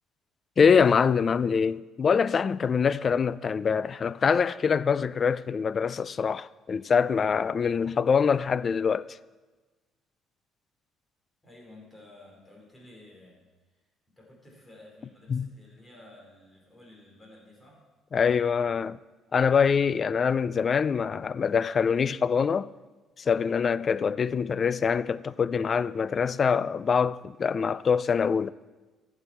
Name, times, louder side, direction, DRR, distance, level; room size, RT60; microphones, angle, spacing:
voice 1, 0.6-9.2 15.3-15.5 18.1-19.0 19.3-22.7 23.2-28.5, left 6 dB, 40° left, 0.3 m, -24 dB
voice 2, 11.4-13.4 13.7-17.8, left 1 dB, 20° left, 4.3 m, -53 dB
14.5 x 8.2 x 4.4 m
cardioid pair, 95°, 0 cm